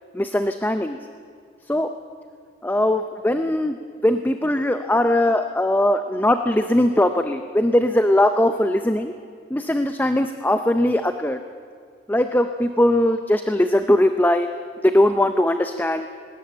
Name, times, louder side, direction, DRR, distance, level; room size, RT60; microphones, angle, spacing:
voice 1, 0.1-1.0 1.7-2.0 2.6-3.8 4.0-9.1 9.5-11.4 12.1-14.5 14.8-16.1, left 1 dB, 10° left, 8 dB, 0.6 m, -20 dB
19.5 x 18.0 x 8.8 m, 2.2 s
head